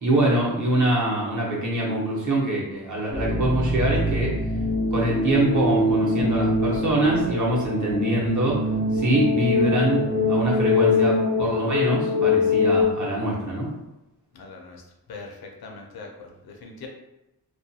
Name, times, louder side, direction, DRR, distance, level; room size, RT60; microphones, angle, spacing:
voice 1, 0.0-4.3 4.9-8.6 8.9-13.7, right 1 dB, 50° right, -4 dB, 0.9 m, -24 dB
sound 1, 3.1-12.8, left 3 dB, 25° right, 0.3 m, -23 dB
voice 2, 14.3-14.8 15.1-16.9, left 4 dB, 70° left, 1 dB, 0.6 m, -41 dB
2.4 x 2.2 x 2.7 m, 0.93 s
wide cardioid pair, 105°, 38 cm